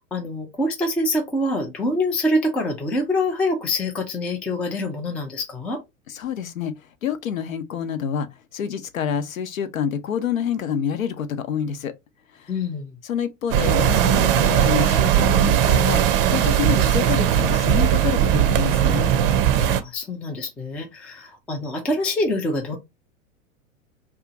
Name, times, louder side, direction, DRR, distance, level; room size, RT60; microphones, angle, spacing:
voice 1, 0.1-5.8 12.5-13.0 19.6-22.8, left 1 dB, 5° left, 0.3 m, -25 dB
voice 2, 6.1-6.7 7.0-8.3 8.5-11.9 13.0-16.0 16.3-19.1, left 8 dB, 75° left, 0.7 m, -27 dB
sound 1, 13.5-19.8, right 10 dB, 45° right, 0.6 m, -19 dB
2.8 x 2.4 x 3.7 m
figure-of-eight pair, 95°, 41 cm